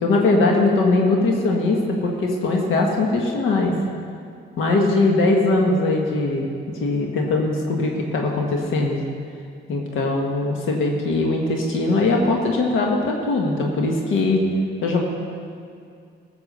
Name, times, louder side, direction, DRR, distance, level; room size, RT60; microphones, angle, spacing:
voice 1, 0.0-3.7 4.6-6.5 6.8-9.0 9.7-14.4 14.8-15.0, left 2 dB, 80° left, 1 dB, 1.6 m, -20 dB
15.0 x 7.2 x 6.7 m, 2.3 s
cardioid pair, 90°, 20 cm